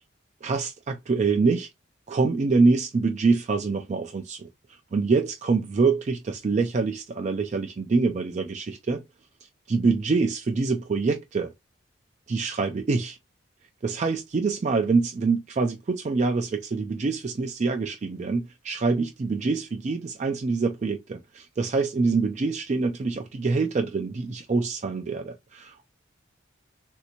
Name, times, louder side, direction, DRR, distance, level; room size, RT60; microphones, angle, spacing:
voice 1, 0.4-1.7 2.1-4.5 4.9-9.0 9.7-11.5 12.3-13.2 13.8-25.8, right 4 dB, 35° right, 0.3 m, -25 dB
3.2 x 2.6 x 2.8 m
head